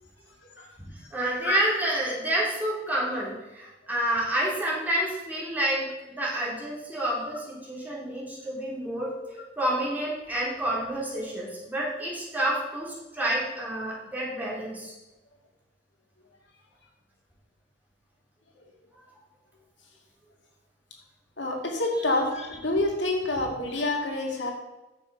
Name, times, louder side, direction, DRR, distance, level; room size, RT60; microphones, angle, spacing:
voice 1, 1.1-9.1 9.6-15.0, right 1 dB, 10° right, -6 dB, 3.4 m, -29 dB
voice 2, 21.4-24.5, left 2 dB, 85° left, 1 dB, 2.2 m, -27 dB
9.8 x 7.4 x 5.4 m, 1.0 s
head